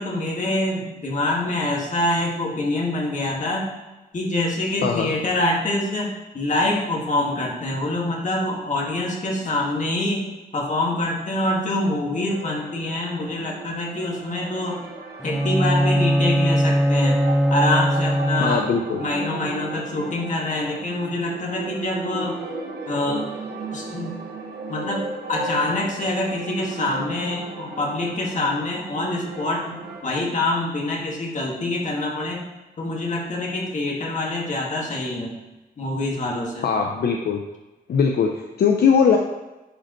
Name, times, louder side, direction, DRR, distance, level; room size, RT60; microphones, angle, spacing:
voice 1, 0.0-3.7 4.1-14.9 15.2-17.2 17.5-18.7 19.0-22.4 22.9-23.3 23.7-24.1 24.7-32.5 32.8-35.4 35.8-36.7, left 2 dB, 50° left, -2 dB, 1.9 m, -25 dB
sound 1, 12.3-30.0, right 4 dB, 90° right, 1.0 m, -36 dB
Bowed string instrument, 15.2-18.9, equal, ahead, 0.3 m, -20 dB
voice 2, 18.4-19.0 36.6-37.4 37.9-39.2, left 6 dB, 75° left, 3 dB, 0.6 m, -20 dB
11.0 x 5.0 x 3.0 m, 1.1 s
wide cardioid pair, 105°, 16 cm